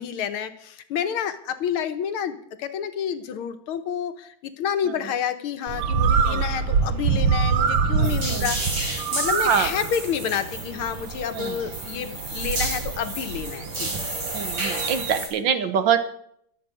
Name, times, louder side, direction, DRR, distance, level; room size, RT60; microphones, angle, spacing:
voice 1, 0.0-13.9, left 8 dB, 85° left, 9 dB, 1.8 m, -29 dB
Bird, 5.7-15.2, right 5 dB, 90° right, 1.9 m, -26 dB
voice 2, 7.9-8.5 9.5-9.7 11.3-11.6 14.3-16.1, right 7 dB, 65° right, 10 dB, 1.6 m, -25 dB
sound 1, 8.0-15.3, right 1 dB, 50° right, 4.4 m, -32 dB
22.5 x 7.6 x 5.0 m, 0.71 s
omnidirectional pair, 2.3 m